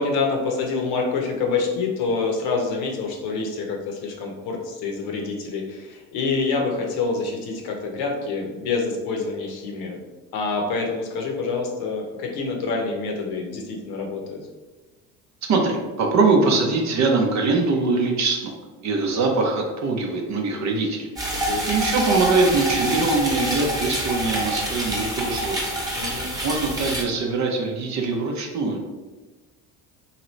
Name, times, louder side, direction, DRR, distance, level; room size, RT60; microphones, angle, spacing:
voice 1, 0.0-10.0 10.3-14.4 21.4-21.7 25.9-26.3, left 4 dB, 60° left, 1 dB, 0.8 m, -26 dB
voice 2, 15.5-18.5 18.8-21.1 21.7-25.6 26.1-28.8, right 3 dB, 40° right, 2 dB, 0.7 m, -22 dB
sound 1, 21.2-27.0, right 1 dB, 10° right, 1.0 m, -26 dB
2.9 x 2.7 x 3.1 m, 1.2 s
hypercardioid pair, 65°, 43 cm